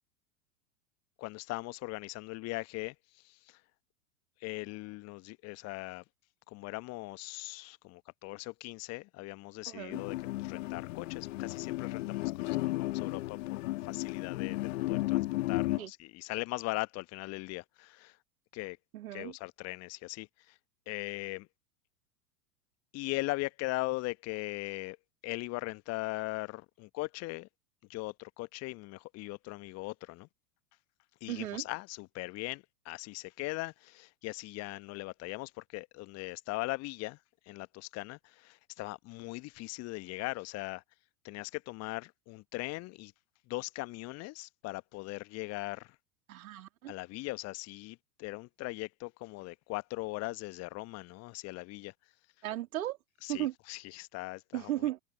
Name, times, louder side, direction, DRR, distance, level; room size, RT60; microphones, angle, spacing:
voice 1, 1.2-2.9 4.4-6.0 6.5-10.1 10.4-13.6 13.8-14.6 14.9-18.1 18.5-18.8 19.1-20.3 20.9-21.5 22.9-25.0 25.2-27.5 27.9-30.3 31.2-37.2 37.5-40.8 41.2-43.1 43.5-45.9 46.9-51.9 53.2-54.7, left 22 dB, 35° left, 1.1 m, -39 dB
voice 2, 9.7-10.0 15.8-15.9 18.9-19.3 31.3-31.6 46.3-46.9 52.4-53.0 53.3-53.5 54.5-55.0, right 13 dB, 60° right, 2.3 m, -35 dB
sound 1, 9.9-15.8, left 18 dB, 50° left, 1.6 m, -34 dB
figure-of-eight pair, 90°, 46 cm